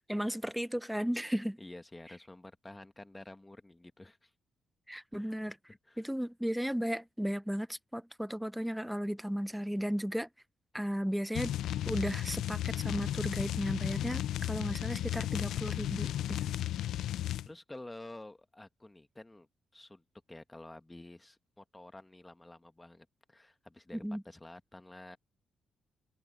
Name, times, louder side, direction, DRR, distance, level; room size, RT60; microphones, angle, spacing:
voice 1, 0.0-1.6 4.9-5.6 6.0-10.3 10.7-11.6 11.9-16.5 23.9-24.2, equal, ahead, 0.4 m, -35 dB
voice 2, 1.6-4.3 5.2-5.3 5.7-6.0 17.4-19.5 19.7-25.2, left 2 dB, 15° left, 1.6 m, -50 dB
sound 1, 11.3-17.5, left 12 dB, 90° left, 0.4 m, -34 dB
cardioid pair, 100°, 0 cm